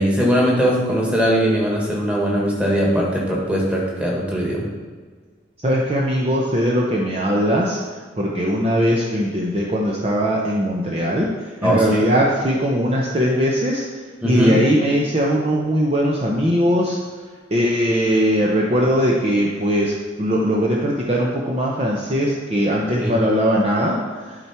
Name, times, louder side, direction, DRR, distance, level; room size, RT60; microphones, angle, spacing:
voice 1, 0.0-4.7 11.6-12.0 14.2-14.5 23.0-23.1, equal, 5° right, -3 dB, 1.7 m, -20 dB
voice 2, 5.6-7.8 8.2-11.3 11.6-13.8 14.2-17.0 17.5-24.4, equal, 30° right, -3 dB, 0.8 m, -20 dB
11.5 x 4.5 x 4.4 m, 1.5 s
head